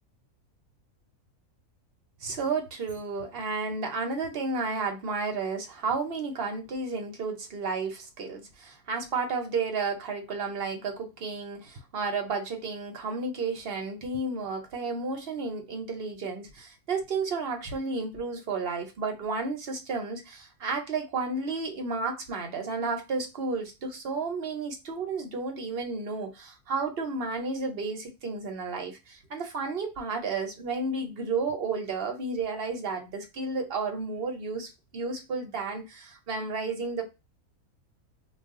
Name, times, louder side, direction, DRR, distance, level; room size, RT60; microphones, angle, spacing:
voice 1, 2.2-37.0, right 4 dB, 50° right, 0.7 m, -32 dB
2.4 x 2.3 x 3.5 m
omnidirectional pair, 1.6 m